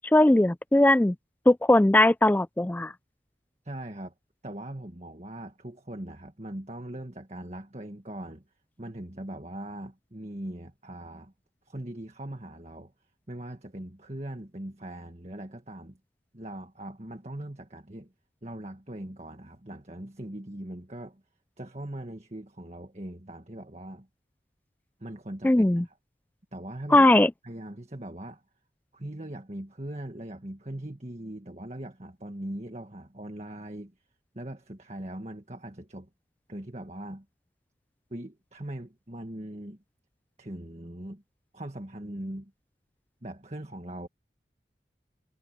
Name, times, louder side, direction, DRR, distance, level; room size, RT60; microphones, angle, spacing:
voice 1, 0.1-1.1 1.5-2.9 25.4-25.8 26.9-27.3, left 1 dB, 10° left, 0.3 m, -19 dB
voice 2, 3.6-4.1 4.4-8.4 8.8-11.3 11.6-12.9 13.3-16.0 16.3-18.1 18.4-21.2 21.6-24.1 25.0-26.0 26.5-27.1 27.4-28.4 28.9-33.9 34.3-36.1 36.5-37.2 38.1-39.8 40.4-41.2 41.5-42.5 43.2-44.1, right 1 dB, 40° right, 1.8 m, -40 dB
head